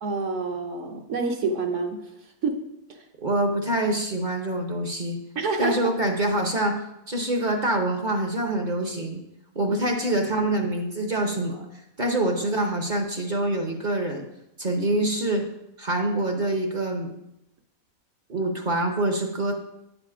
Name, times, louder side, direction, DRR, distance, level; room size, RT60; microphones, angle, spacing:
voice 1, 0.0-2.0 2.4-2.6 2.9-3.0 5.3-5.9 10.2-10.3, right 4 dB, 60° right, 4 dB, 1.1 m, -27 dB
voice 2, 3.2-5.2 5.6-6.8 7.1-9.2 9.5-11.7 12.0-14.2 14.6-15.5 15.8-17.1 18.3-19.5, right 1 dB, 40° right, 3 dB, 0.8 m, -25 dB
9.1 x 5.0 x 4.9 m, 0.84 s
omnidirectional pair, 1.5 m